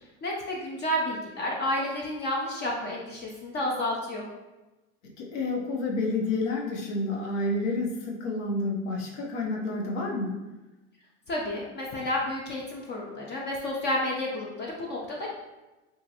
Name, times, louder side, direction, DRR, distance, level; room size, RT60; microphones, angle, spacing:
voice 1, 0.2-4.2 11.3-15.3, left 1 dB, 30° left, -2 dB, 0.5 m, -31 dB
voice 2, 5.2-10.4, left 2 dB, 75° left, -1 dB, 0.8 m, -29 dB
2.9 x 2.5 x 2.7 m, 1.1 s
hypercardioid pair, 105°, 36 cm